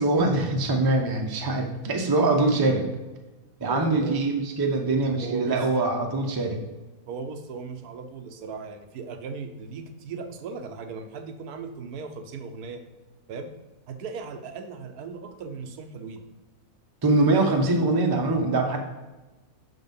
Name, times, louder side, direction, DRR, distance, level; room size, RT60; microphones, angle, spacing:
voice 1, 0.0-2.8 3.6-6.6 17.0-18.8, right 2 dB, 25° right, 2 dB, 0.5 m, -23 dB
voice 2, 3.6-4.2 5.2-5.6 7.1-12.8 13.3-13.5 13.9-16.2, right 5 dB, 80° right, 7 dB, 1.2 m, -37 dB
5.9 x 3.9 x 5.3 m, 1.1 s
omnidirectional pair, 1.6 m